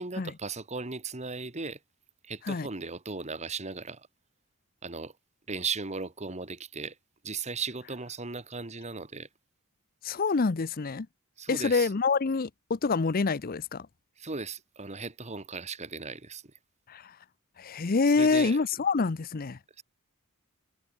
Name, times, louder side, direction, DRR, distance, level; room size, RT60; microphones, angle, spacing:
voice 1, 0.0-1.8 2.3-4.1 4.8-5.1 5.5-6.9 7.2-9.3 11.4-11.9 14.2-16.4 18.1-18.6 19.8-19.9, right 4 dB, 30° right, 1.7 m, -37 dB
voice 2, 10.0-11.1 11.5-13.9 16.9-17.1 17.6-19.6, left 4 dB, 40° left, 0.6 m, -26 dB
head